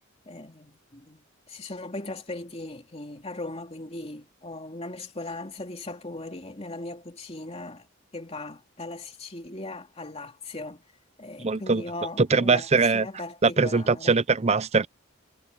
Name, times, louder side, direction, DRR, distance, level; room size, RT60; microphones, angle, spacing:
voice 1, 0.3-7.9 8.1-10.8 11.2-14.1, left 2 dB, 30° left, 2.9 m, -38 dB
voice 2, 11.4-11.8 12.2-13.1 13.4-14.9, right 4 dB, 30° right, 0.6 m, -22 dB
head